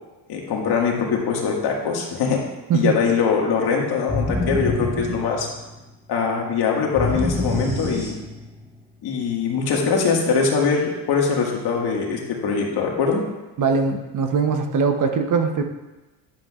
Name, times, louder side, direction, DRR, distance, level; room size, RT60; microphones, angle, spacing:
voice 1, 0.3-2.4 2.7-5.5 6.1-8.1 9.0-13.2, left 5 dB, 60° left, -1 dB, 1.8 m, -22 dB
sound 1, 4.1-5.8 7.0-8.6, left 2 dB, 5° right, 1.5 m, -26 dB
voice 2, 13.6-15.6, right 5 dB, 45° right, 6 dB, 0.8 m, -21 dB
10.5 x 7.6 x 2.4 m, 1.1 s
cardioid pair, 100°, 44 cm